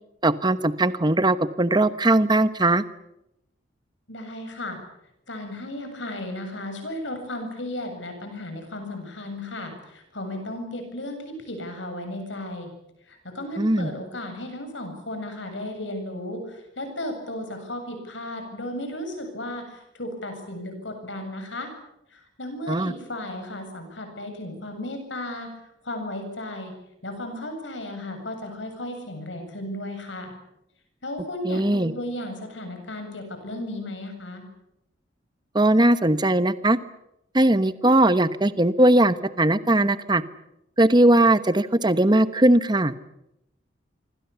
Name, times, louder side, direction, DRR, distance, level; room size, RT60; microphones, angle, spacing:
voice 1, 0.2-2.8 13.6-13.9 22.7-22.9 31.4-31.9 35.5-36.8 37.3-40.2 40.8-42.9, right 1 dB, 25° right, 13 dB, 1.1 m, -19 dB
voice 2, 4.1-4.8 5.3-12.7 13.1-21.7 22.1-25.5 25.8-26.7 27.0-30.3 31.0-34.5, left 1 dB, 85° left, 6 dB, 7.7 m, -34 dB
26.5 x 24.5 x 7.1 m, 0.83 s
head